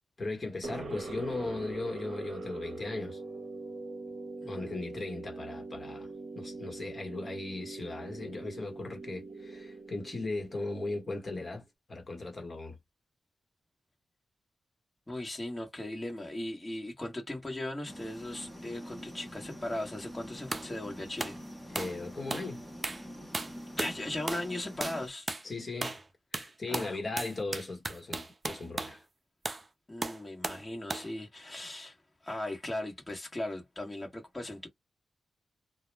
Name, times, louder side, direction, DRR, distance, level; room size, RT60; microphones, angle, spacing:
voice 1, 0.2-3.2 4.5-6.1 6.3-11.6 11.9-12.8 21.7-22.6 25.4-26.0 26.3-29.0, left 2 dB, 45° left, 1.1 m, -37 dB
sound 1, 0.6-11.5, right 3 dB, 70° right, 0.7 m, -43 dB
voice 2, 4.4-4.7 15.1-21.4 23.7-25.3 26.7-27.0 29.9-32.0 32.2-34.7, left 1 dB, 20° left, 1.1 m, -38 dB
sound 2, 17.9-25.1, equal, 5° left, 0.8 m, -46 dB
sound 3, 20.5-20.7 21.2-21.4 21.8-22.0 22.3-22.5 22.8-23.1 23.3-24.0 24.3-24.5 24.8-25.0 25.3-25.5 25.8-26.1 26.3-29.0 29.5-29.7 30.0-30.6 30.9-31.1, right 2 dB, 35° right, 0.5 m, -36 dB
2.2 x 2.1 x 3.2 m
cardioid pair, 80°, 0 cm